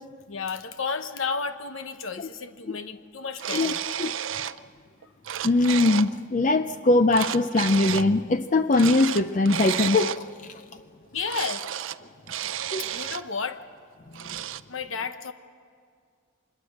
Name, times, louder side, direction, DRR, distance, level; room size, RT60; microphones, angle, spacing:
voice 1, 0.3-3.8 11.1-11.7 12.8-13.6 14.7-15.3, left 5 dB, 85° left, 9 dB, 1.1 m, -32 dB
sound 1, 3.4-4.6 5.0-6.1 7.1-8.1 8.7-10.2 11.2-12.0 12.3-13.2 14.1-14.6, right 10 dB, 80° right, 0.5 m, -31 dB
voice 2, 5.4-10.6 12.7-12.8, left 2 dB, 40° left, 10 dB, 0.5 m, -21 dB
25.0 x 22.0 x 6.5 m, 2.2 s
head